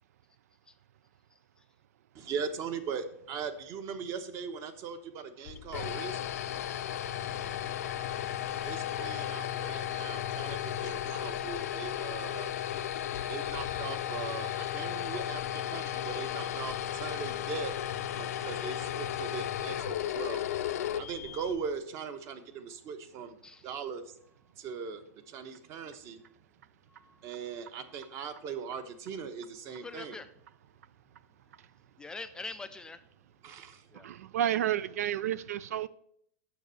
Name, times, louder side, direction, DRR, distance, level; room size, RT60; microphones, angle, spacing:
voice 1, 1.3-1.6 7.4-8.0 13.7-13.8 17.2-17.4 23.4-23.7 26.9-27.3 27.8-28.3 29.7-30.3 32.0-33.0 33.9-34.1, left 3 dB, 10° left, 0.3 m, -48 dB
voice 2, 2.1-6.2 8.6-12.5 13.3-17.8 18.1-20.4 21.0-24.1 24.6-26.2 27.2-30.2 33.4-33.9, right 6 dB, 35° right, 0.9 m, -40 dB
sound 1, 5.5-21.7, left 11 dB, 85° left, 0.7 m, -35 dB
voice 3, 33.9-35.9, right 11 dB, 80° right, 0.4 m, -31 dB
7.3 x 6.1 x 6.8 m
supercardioid pair, 150°, 8 cm